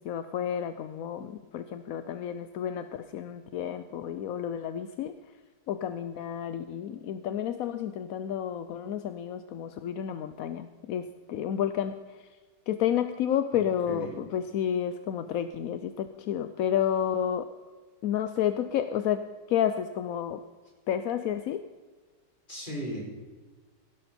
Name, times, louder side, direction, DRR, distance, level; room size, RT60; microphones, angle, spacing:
voice 1, 0.0-5.2 5.7-12.2 12.7-17.5 18.0-20.4 20.9-21.6, left 9 dB, 65° left, 10 dB, 0.9 m, -31 dB
voice 2, 13.5-14.1 22.5-23.0, right 1 dB, 25° left, -2 dB, 4.7 m, -37 dB
17.0 x 11.5 x 4.4 m, 1.4 s
omnidirectional pair, 2.0 m